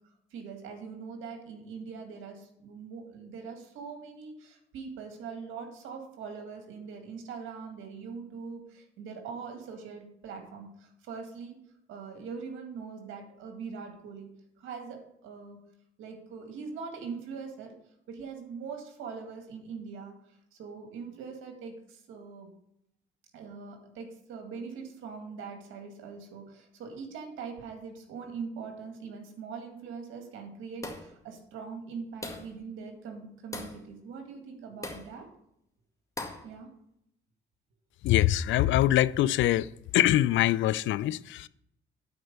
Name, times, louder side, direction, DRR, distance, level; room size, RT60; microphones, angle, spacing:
voice 1, 0.3-11.5 11.9-14.3 14.6-15.6 16.0-17.7 18.1-22.5 23.3-35.3 36.4-36.7, right 5 dB, 85° right, 2.0 m, -42 dB
sound 1, 30.8-31.2 32.2-32.6 33.5-33.8 34.8-35.1 36.2-36.5, left 2 dB, 15° left, 2.0 m, -39 dB
voice 2, 38.0-39.7 39.9-41.5, left 14 dB, 75° left, 0.4 m, -24 dB
9.5 x 4.5 x 6.7 m
cardioid pair, 90°, 20 cm